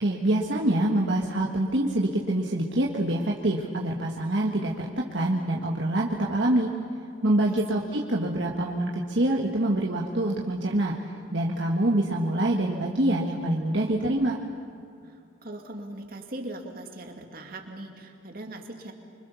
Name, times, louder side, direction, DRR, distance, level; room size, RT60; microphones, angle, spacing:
voice 1, 0.0-6.7 7.2-10.9 11.3-14.4, right 1 dB, 65° right, -2 dB, 1.7 m, -25 dB
voice 2, 7.5-8.0 15.0-18.9, right 1 dB, 50° right, 3 dB, 2.6 m, -40 dB
25.5 x 25.5 x 7.1 m, 2.5 s
head